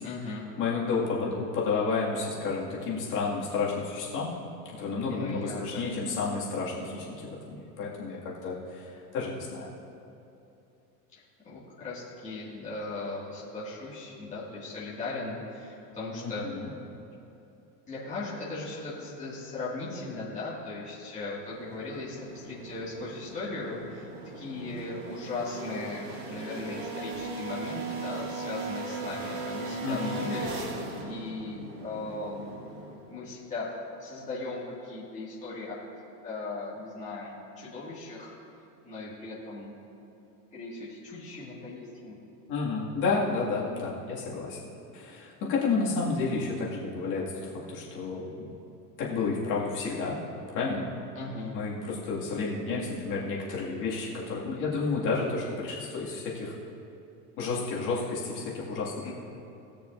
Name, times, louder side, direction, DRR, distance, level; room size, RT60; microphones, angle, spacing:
voice 1, 0.0-0.5 5.1-5.6 11.4-16.5 17.9-24.1 24.3-32.5 33.1-33.7 34.0-35.8 36.2-38.3 38.8-39.7 40.5-42.2 43.5-44.2 51.1-51.6 59.0-59.1, left 3 dB, 15° left, -9 dB, 2.2 m, -38 dB
voice 2, 0.6-4.3 4.7-9.7 16.2-16.7 29.8-30.2 42.5-44.6 44.9-48.3 49.0-50.2 50.5-50.8 51.5-56.5 57.4-59.1, left 4 dB, 35° left, -6 dB, 2.3 m, -31 dB
sound 1, 21.4-33.2, right 3 dB, 45° right, 1.6 m, -38 dB
19.5 x 6.6 x 2.6 m, 2.8 s
supercardioid pair, 150°, 50 cm